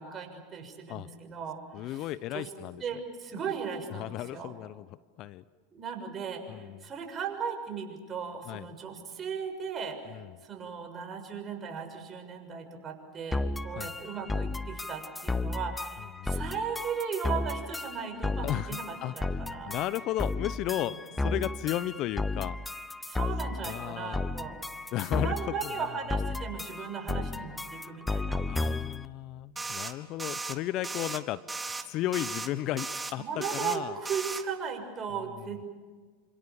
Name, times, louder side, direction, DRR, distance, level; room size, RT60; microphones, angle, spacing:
voice 1, 0.0-2.1 2.3-2.5 2.8-4.5 5.7-19.8 20.7-21.0 23.1-24.6 25.0-28.7 33.1-35.7, right 6 dB, 30° right, 4 dB, 6.4 m, -37 dB
voice 2, 1.7-2.8 3.9-4.9 5.2-5.4 6.5-6.8 8.5-8.7 10.1-10.2 13.7-14.0 16.2-16.4 18.4-19.1 19.7-22.6 23.6-24.2 24.9-25.3 28.3-31.4 31.9-32.9 33.1-33.2 33.5-34.0 35.4-35.5, left 14 dB, 50° left, 17 dB, 0.8 m, -34 dB
sound 1, 13.3-29.1, left 2 dB, 10° left, 0.9 m, -34 dB
sound 2, 29.6-29.9 30.2-30.5 30.8-31.2 31.5-31.8 32.1-32.5 32.8-33.1 33.4-33.8 34.1-34.4, right 3 dB, 15° right, 1.8 m, -36 dB
28.0 x 26.5 x 7.1 m, 1.5 s
hypercardioid pair, 95°, 0 cm